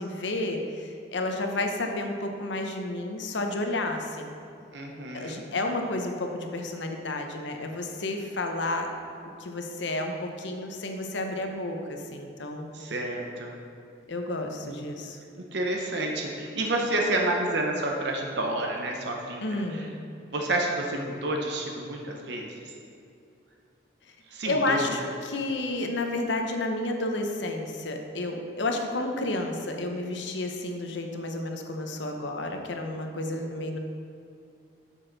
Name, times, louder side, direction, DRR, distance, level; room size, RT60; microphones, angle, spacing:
voice 1, 0.0-4.4 5.1-8.9 9.4-12.7 14.1-15.2 19.4-19.9 24.5-33.8, left 2 dB, 70° left, 4 dB, 0.8 m, -31 dB
voice 2, 4.7-5.4 12.7-13.5 14.6-14.7 15.5-19.6 20.3-22.5 24.3-24.9, right 1 dB, 60° right, 1 dB, 0.7 m, -29 dB
7.7 x 6.3 x 3.9 m, 2.6 s
head